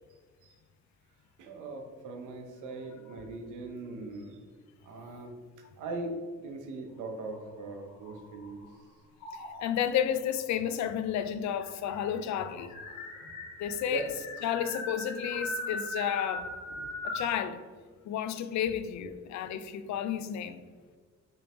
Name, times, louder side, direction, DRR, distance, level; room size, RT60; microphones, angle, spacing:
voice 1, 1.4-4.4 4.8-5.3 5.8-6.2 6.4-8.6 12.9-13.0 13.9-14.1, right 3 dB, 85° right, 4 dB, 0.8 m, -40 dB
sound 1, 7.2-8.7 9.2-9.8 10.8-10.9 11.2-11.3 11.6-17.4, left 2 dB, 85° left, 1.3 m, -39 dB
voice 2, 9.6-12.8 13.6-14.1 14.4-16.5 17.0-17.6 18.1-20.6, left 9 dB, 65° left, 10 dB, 0.4 m, -31 dB
5.1 x 3.4 x 2.9 m, 1.5 s
cardioid pair, 90°, 30 cm